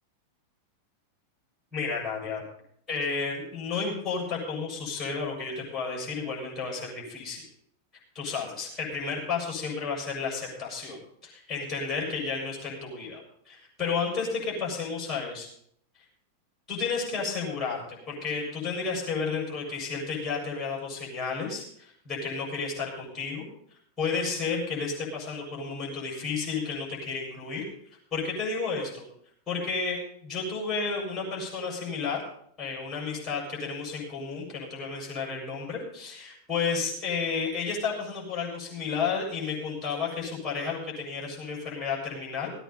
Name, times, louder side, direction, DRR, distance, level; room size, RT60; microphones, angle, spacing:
voice 1, 1.7-2.4 2.9-7.4 8.2-13.2 13.5-15.5 16.7-23.5 24.0-27.6 28.1-29.1 29.5-32.2 32.6-42.5, left 5 dB, 15° left, -3 dB, 7.1 m, -32 dB
17.5 x 9.3 x 5.5 m, 0.65 s
figure-of-eight pair, 90°, 0 cm